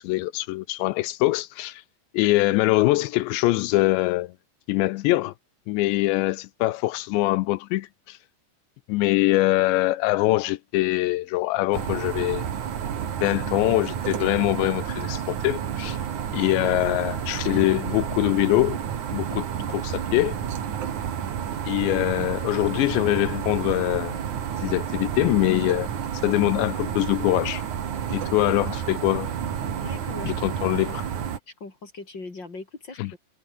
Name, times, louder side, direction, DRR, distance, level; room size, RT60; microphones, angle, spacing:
voice 1, 0.0-1.8 2.1-4.3 4.7-5.3 5.7-8.2 8.9-12.5 13.2-16.0 16.3-18.8 19.1-20.3 21.7-24.2 24.6-25.9 26.2-27.6 28.1-29.3 30.3-31.0 33.0-33.2, left 18 dB, 80° left, 2.8 m, -23 dB
sound 1, 11.7-31.4, right 8 dB, 50° right, 3.0 m, -30 dB
voice 2, 29.7-30.7 31.5-33.2, left 3 dB, 25° left, 3.6 m, -40 dB
omnidirectional pair, 5.5 m